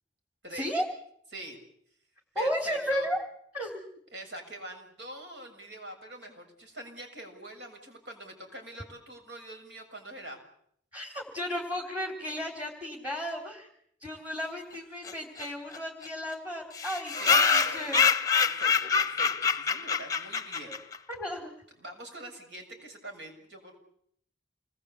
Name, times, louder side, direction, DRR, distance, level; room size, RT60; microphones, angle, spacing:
voice 1, 0.5-0.9 2.4-3.2 3.5-3.8 10.9-13.7 14.0-18.1 20.7-20.8 21.1-21.5, equal, 10° right, 0 dB, 3.6 m, -34 dB
voice 2, 2.3-3.1 4.1-10.4 17.2-17.4 17.6-18.0 18.4-20.8 21.8-23.8, right 1 dB, 65° right, 4 dB, 7.0 m, -44 dB
sound 1, 15.0-15.1 15.4-15.5 15.7-15.8 16.0-16.1 16.7-21.0, left 6 dB, 20° left, 1.0 m, -25 dB
28.5 x 21.0 x 8.3 m, 0.69 s
head